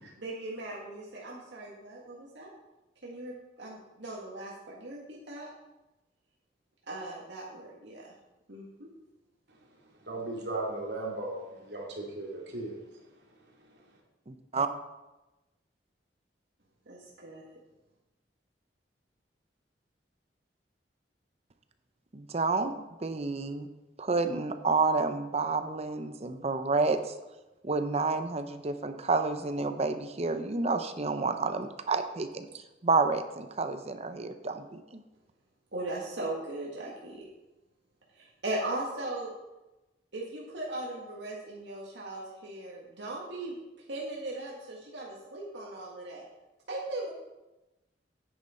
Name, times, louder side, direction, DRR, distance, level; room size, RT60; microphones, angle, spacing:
voice 1, 0.2-2.5 3.0-5.5 6.9-8.1 8.5-8.9 16.9-17.6 35.7-37.2 38.2-39.3 40.1-43.5 43.9-46.3 46.7-47.1, right 2 dB, 85° right, -3 dB, 1.9 m, -38 dB
voice 2, 10.0-13.0 13.7-13.9, right 2 dB, 70° right, -1 dB, 2.7 m, -37 dB
voice 3, 14.3-14.7 22.1-23.7 24.0-27.1 27.6-35.0, right 3 dB, 35° right, 9 dB, 0.7 m, -30 dB
9.7 x 9.3 x 4.4 m, 1.0 s
head